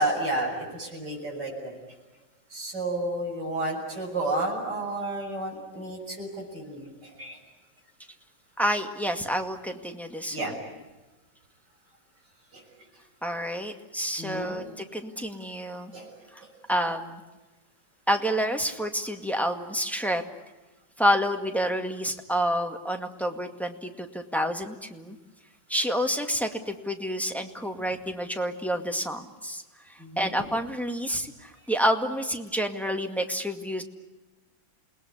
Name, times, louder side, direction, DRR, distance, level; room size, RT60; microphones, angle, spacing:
voice 1, 0.0-1.7 2.5-7.4 10.3-10.5 12.5-12.6 14.2-14.6 15.9-16.1 30.0-30.3, right 2 dB, 60° right, -1 dB, 7.7 m, -31 dB
voice 2, 8.6-10.5 13.2-15.9 16.7-17.2 18.1-20.2 21.0-25.2 25.7-29.6 30.2-33.8, equal, ahead, 5 dB, 1.9 m, -28 dB
29.0 x 19.5 x 9.8 m, 1.1 s
omnidirectional pair, 2.1 m